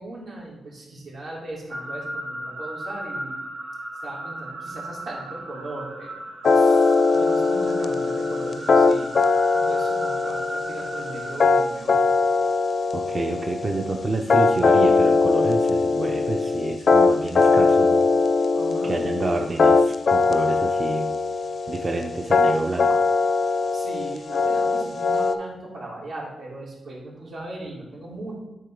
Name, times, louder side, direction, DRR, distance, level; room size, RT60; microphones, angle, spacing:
voice 1, 0.0-3.4 4.0-6.3 6.5-9.2 9.5-12.0 18.5-19.0 23.7-28.4, right 2 dB, 70° right, -4 dB, 2.4 m, -38 dB
sound 1, 1.7-11.4, right 1 dB, 50° right, 1.5 m, -36 dB
sound 2, 6.4-25.3, left 4 dB, 55° left, 0.4 m, -20 dB
voice 2, 12.9-18.1 18.8-21.1 21.7-23.0, right 2 dB, 30° right, 2 dB, 0.5 m, -28 dB
9.3 x 3.9 x 3.7 m, 1.0 s
wide cardioid pair, 110°, 0 cm